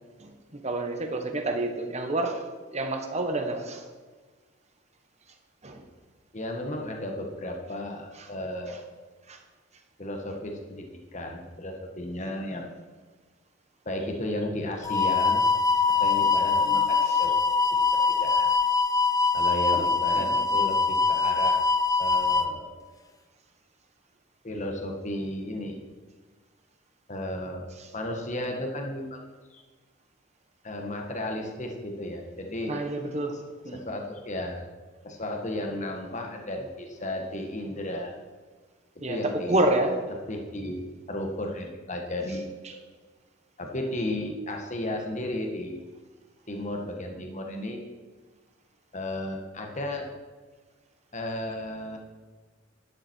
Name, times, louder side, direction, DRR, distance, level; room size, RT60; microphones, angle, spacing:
voice 1, 0.2-2.4 2.7-3.8 5.6-5.8 9.3-9.4 17.0-17.2 19.7-19.9 20.2-20.3 32.7-33.3 33.6-33.8 39.0-39.9, right 2 dB, 35° right, 4 dB, 1.5 m, -28 dB
voice 2, 6.3-8.9 10.0-10.9 11.1-12.7 13.9-15.5 16.0-17.3 17.9-18.5 19.3-21.6 22.0-22.9 24.4-25.8 27.1-29.2 29.5-29.6 30.6-32.8 33.7-34.6 35.0-38.1 39.1-39.6 40.3-40.8 41.1-42.8 43.6-45.8 46.5-47.9 48.9-50.1 51.1-52.0, left 1 dB, 35° left, 2 dB, 1.6 m, -34 dB
sound 1, 14.8-22.5, left 4 dB, 20° left, 0.7 m, -23 dB
12.0 x 10.5 x 4.6 m, 1.4 s
head